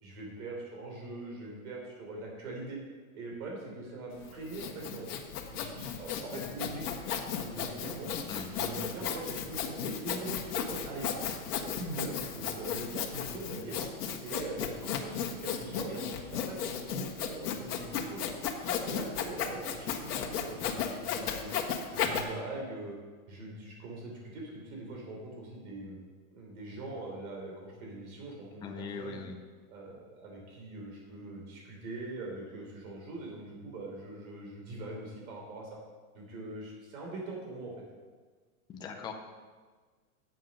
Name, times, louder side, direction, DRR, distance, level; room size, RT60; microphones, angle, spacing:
voice 1, 0.0-2.8 3.1-5.1 5.5-8.1 8.5-11.1 11.6-13.8 14.2-18.3 18.6-21.5 21.9-23.0 23.3-26.0 26.3-29.2 29.7-35.8 36.1-37.7, right 2 dB, 65° right, -1 dB, 3.5 m, -42 dB
Sawing, 4.2-22.2, left 7 dB, 90° left, 1.6 m, -35 dB
voice 2, 8.2-8.6 28.6-29.4 38.7-39.1, left 6 dB, 10° left, 4 dB, 0.4 m, -40 dB
9.5 x 7.7 x 5.4 m, 1.5 s
supercardioid pair, 145°, 45 cm